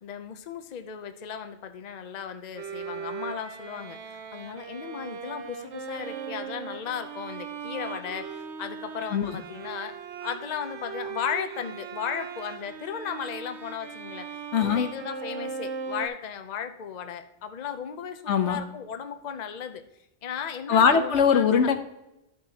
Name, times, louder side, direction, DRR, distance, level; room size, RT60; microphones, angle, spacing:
voice 1, 0.0-9.9 10.2-19.8 20.2-21.5, left 8 dB, 45° left, 8 dB, 0.7 m, -36 dB
Bowed string instrument, 2.6-16.1, right 6 dB, 80° right, 1.1 m, -38 dB
voice 2, 9.1-9.4 14.5-14.9 18.3-18.6 20.7-21.7, left 6 dB, 90° left, 7 dB, 1.2 m, -21 dB
13.5 x 6.1 x 2.8 m, 0.88 s
omnidirectional pair, 1.2 m